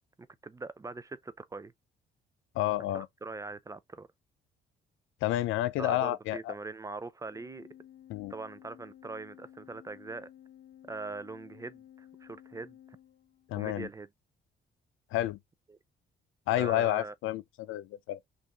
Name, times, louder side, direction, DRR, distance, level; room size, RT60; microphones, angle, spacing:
voice 1, 0.4-1.7 2.9-4.1 5.8-7.7 8.3-10.3 10.9-12.8 13.6-14.1 15.7-15.8 16.6-17.1, right 3 dB, 15° right, 0.3 m, -41 dB
voice 2, 2.6-3.1 5.2-6.5 8.1-8.3 13.5-13.9 15.1-15.4 16.5-18.2, left 14 dB, 85° left, 0.5 m, -30 dB
Organ, 7.2-13.7, left 11 dB, 60° left, 0.8 m, -55 dB
3.4 x 2.5 x 2.9 m
cardioid pair, 90°, 20 cm